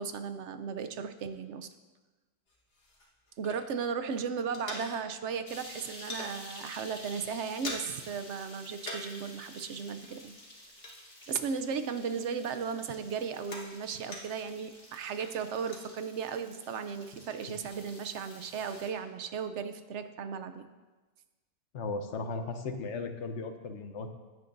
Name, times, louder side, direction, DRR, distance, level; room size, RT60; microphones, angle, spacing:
voice 1, 0.0-1.7 3.4-10.3 11.3-20.7, right 6 dB, 85° right, 10 dB, 1.0 m, -36 dB
sound 1, 2.5-4.0 4.2-5.3 5.6-6.4 6.8-7.0 7.2-8.1 8.4-9.2 9.5-11.8 12.2-14.5 15.0-15.9, left 2 dB, 60° left, 1.7 m, -44 dB
sound 2, 5.5-18.9, left 1 dB, 40° left, 2.9 m, -51 dB
voice 2, 21.7-24.1, left 3 dB, 85° left, 7 dB, 1.2 m, -36 dB
15.5 x 9.5 x 2.6 m, 1.2 s
omnidirectional pair, 1.2 m